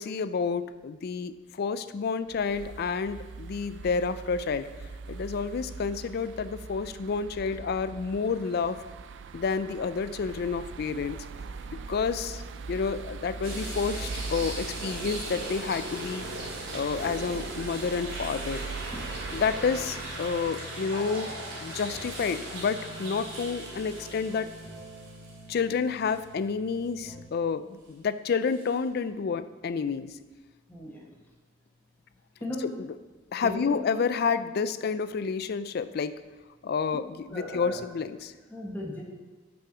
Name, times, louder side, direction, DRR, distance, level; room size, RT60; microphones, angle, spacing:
voice 1, 0.0-4.7 5.1-8.8 9.3-11.2 11.7-12.4 12.7-16.3 16.7-18.7 19.3-21.3 21.6-24.5 25.5-30.2 33.3-36.1 36.6-38.3, left 5 dB, 50° left, 13 dB, 0.4 m, -29 dB
sound 1, 2.3-20.5, right 4 dB, 60° right, 0.4 m, -41 dB
sound 2, 13.4-25.6 26.1-26.2 28.5-28.7, right 1 dB, 80° right, 2.3 m, -39 dB
sound 3, 13.9-27.2, equal, 25° right, 2.3 m, -48 dB
voice 2, 30.7-31.0 32.4-32.7 33.4-33.8 37.3-37.8 38.5-39.0, left 1 dB, 10° left, -2 dB, 1.2 m, -36 dB
6.3 x 5.7 x 6.0 m, 1.3 s
head